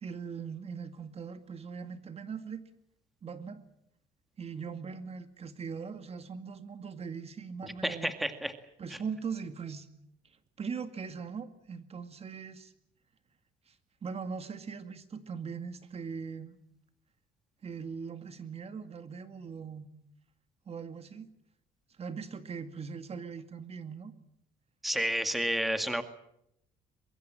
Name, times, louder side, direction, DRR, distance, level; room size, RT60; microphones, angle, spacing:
voice 1, 0.0-2.6 3.2-3.6 4.4-8.1 8.8-9.9 10.6-12.7 13.7-13.8 14.0-16.6 17.6-19.9 20.7-21.3 22.0-24.1, right 6 dB, 35° right, 9 dB, 2.2 m, -40 dB
voice 2, 7.6-8.5 24.8-26.0, equal, ahead, 8 dB, 2.1 m, -31 dB
23.0 x 23.0 x 7.7 m, 0.77 s
cardioid pair, 110°, 17 cm